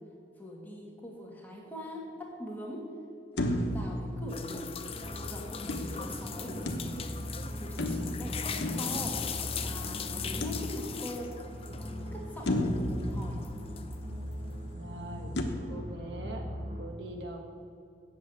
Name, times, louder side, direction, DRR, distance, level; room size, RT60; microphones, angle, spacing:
voice 1, 0.4-2.9 3.7-4.8 5.0-6.6 7.6-9.2 9.6-11.3 11.7-13.4, equal, 10° left, -2 dB, 1.8 m, -42 dB
sound 1, 3.4-5.0 5.7-7.3 7.8-9.7 10.4-11.3 11.7-11.8 12.5-14.1 15.4-15.5, left 1 dB, 85° left, 1.0 m, -34 dB
sound 2, 4.3-12.1 12.4-14.1, left 7 dB, 35° left, 0.5 m, -39 dB
sound 3, 4.8-16.8, equal, 40° right, 1.2 m, -40 dB
voice 2, 14.7-16.4 16.8-17.4, right 1 dB, 90° right, 2 dB, 1.4 m, -42 dB
8.0 x 7.4 x 8.1 m, 2.6 s
head